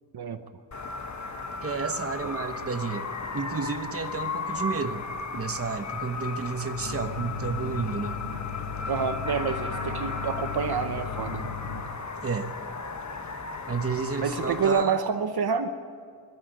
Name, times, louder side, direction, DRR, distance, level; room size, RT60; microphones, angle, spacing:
sound 1, 0.7-14.8, left 4 dB, 40° left, 1.2 m, -35 dB
voice 1, 1.6-3.1 3.3-5.0 5.3-8.2 12.2-12.5 13.7-15.1, right 5 dB, 30° right, 8 dB, 1.1 m, -31 dB
sound 2, 6.7-11.8, left 6 dB, 75° left, 7.2 m, -36 dB
voice 2, 8.9-11.5 14.2-15.7, right 6 dB, 55° right, 8 dB, 0.9 m, -28 dB
22.0 x 13.0 x 9.3 m, 2.3 s
wide cardioid pair, 130°, 45 cm